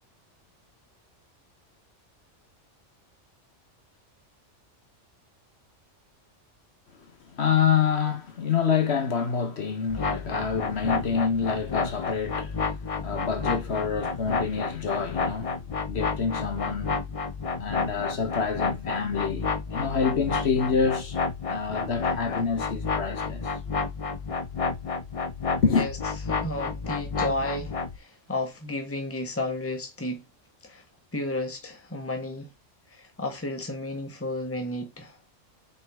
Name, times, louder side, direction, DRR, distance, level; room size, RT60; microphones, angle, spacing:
voice 1, 7.0-17.1 17.5-21.2 21.5-23.5 25.6-25.9, left 6 dB, 60° left, 1.4 m, -27 dB
sound 1, 9.9-28.0, left 4 dB, 35° left, 0.6 m, -30 dB
voice 2, 26.3-30.2 30.6-30.8 31.1-32.5 32.9-35.2, left 1 dB, 10° left, 1.4 m, -32 dB
6.3 x 5.2 x 3.6 m
omnidirectional pair, 1.3 m